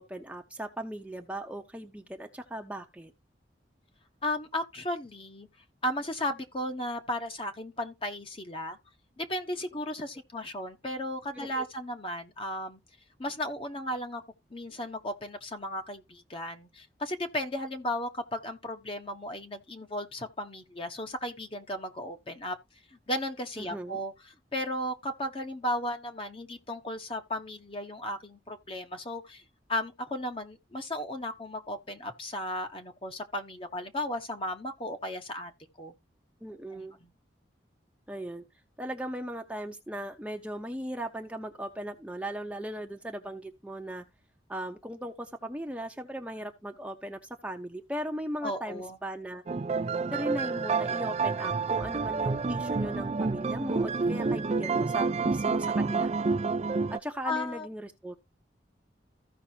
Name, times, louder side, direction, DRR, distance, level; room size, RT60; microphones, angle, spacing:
voice 1, 0.0-3.1 11.4-11.5 23.6-24.0 36.4-37.0 38.1-38.4 38.8-44.0 44.5-49.4 50.1-56.1 56.9-58.2, right 1 dB, 5° right, 0.8 m, -38 dB
voice 2, 4.2-5.5 5.8-8.8 9.2-12.8 13.2-14.2 14.5-22.6 22.9-24.1 24.5-29.4 29.7-35.5 35.8-35.9 36.7-37.1 48.4-49.0 57.2-57.7, left 1 dB, 30° left, 1.2 m, -35 dB
sound 1, 49.5-57.0, right 4 dB, 35° right, 0.4 m, -29 dB
15.0 x 5.5 x 2.8 m
head